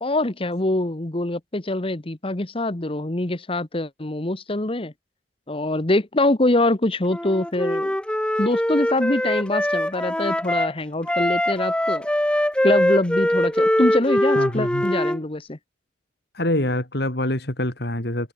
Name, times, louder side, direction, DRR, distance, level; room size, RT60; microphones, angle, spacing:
voice 1, 0.0-4.9 5.5-8.0 8.4-12.1 12.6-15.6, left 2 dB, 30° left, 1.2 m, -24 dB
Wind instrument woodwind instrument, 7.1-10.7 11.1-15.2, left 1 dB, 5° left, 0.8 m, -22 dB
voice 2, 14.4-14.9 16.3-18.3, left 1 dB, 65° left, 5.3 m, -25 dB
head